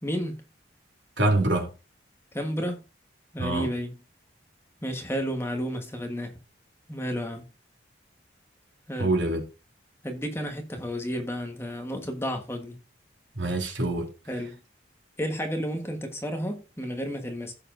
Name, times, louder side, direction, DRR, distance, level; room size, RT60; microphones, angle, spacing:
voice 1, 0.0-0.4 2.3-2.8 3.3-3.9 4.8-6.3 6.9-7.5 8.9-9.1 10.0-12.8 14.3-14.6 15.2-17.5, equal, 15° left, 1.3 m, -31 dB
voice 2, 1.2-1.7 3.4-3.7 9.0-9.4 13.3-14.1, right 2 dB, 80° right, 3.1 m, -25 dB
15.0 x 6.9 x 2.6 m
head